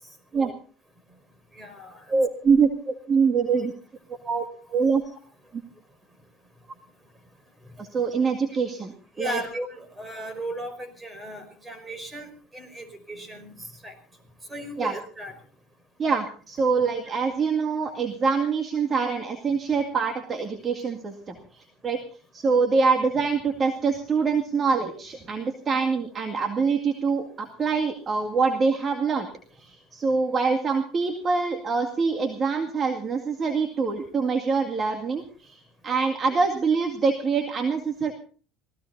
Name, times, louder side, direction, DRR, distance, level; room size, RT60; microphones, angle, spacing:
voice 1, 1.5-2.1 5.1-5.2 9.2-14.0 14.5-15.3 17.0-17.1 30.3-30.4, right 1 dB, 15° right, 10 dB, 5.2 m, -36 dB
voice 2, 2.1-3.7 4.2-5.0 7.8-9.4 14.8-14.9 16.0-22.0 22.3-29.3 29.6-38.1, right 5 dB, 30° right, 5 dB, 2.2 m, -25 dB
27.0 x 17.5 x 2.7 m, 0.40 s
supercardioid pair, 110°, 0 cm